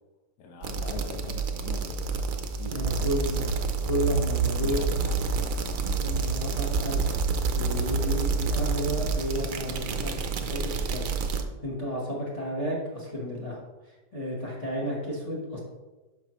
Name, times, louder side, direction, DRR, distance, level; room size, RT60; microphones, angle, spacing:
voice 1, 0.4-3.1 3.4-3.9 4.6-5.2 5.8-6.0, left 4 dB, 65° left, 2 dB, 1.4 m, -43 dB
sound 1, 0.6-11.4, right 4 dB, 60° right, 1.0 m, -28 dB
voice 2, 2.7-3.4 3.8-4.9 6.0-7.0 7.5-10.1 10.4-11.1 11.4-15.6, equal, 20° left, -3 dB, 1.2 m, -32 dB
12.0 x 5.2 x 3.1 m, 1.2 s
omnidirectional pair, 1.8 m